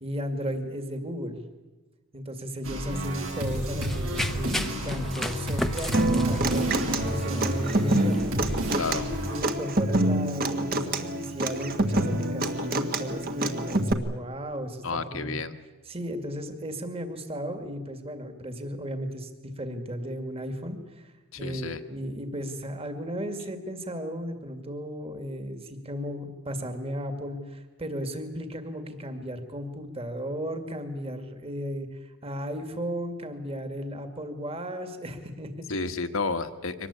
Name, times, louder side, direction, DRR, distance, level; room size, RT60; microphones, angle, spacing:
voice 1, 0.0-1.4 2.1-8.3 9.3-15.4 15.9-21.1 21.4-35.8, equal, 30° right, 8 dB, 2.2 m, -35 dB
sound 1, 2.6-9.4, equal, 70° right, 6.6 m, -31 dB
Run, 3.2-8.7, left 1 dB, ahead, 0.8 m, -36 dB
Human voice / Acoustic guitar, 5.9-13.9, right 1 dB, 45° right, 1.6 m, -26 dB
voice 2, 8.7-9.1 14.8-15.6 21.3-21.8 35.7-36.9, left 3 dB, 65° left, 9 dB, 1.4 m, -31 dB
24.0 x 19.5 x 8.5 m, 1.2 s
head